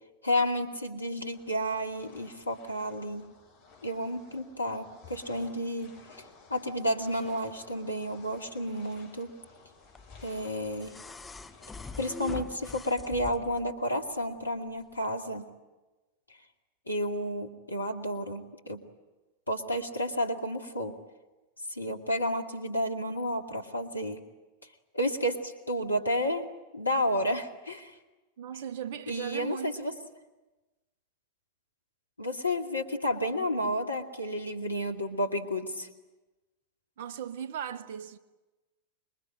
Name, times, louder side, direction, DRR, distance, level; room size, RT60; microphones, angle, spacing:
voice 1, 0.2-3.3 3.8-9.3 10.2-10.9 12.0-15.5 16.9-18.8 19.5-21.0 21.7-24.2 24.9-28.0 29.1-29.9 32.2-35.9, equal, 80° left, 2.3 m, -31 dB
sound 1, 1.3-12.4, left 4 dB, 45° left, 7.0 m, -55 dB
sound 2, 9.9-13.7 15.0-15.1, left 3 dB, 10° left, 1.0 m, -43 dB
voice 2, 28.4-29.8 37.0-38.2, right 8 dB, 55° right, 1.3 m, -37 dB
26.0 x 22.5 x 9.0 m
figure-of-eight pair, 90°, 0 cm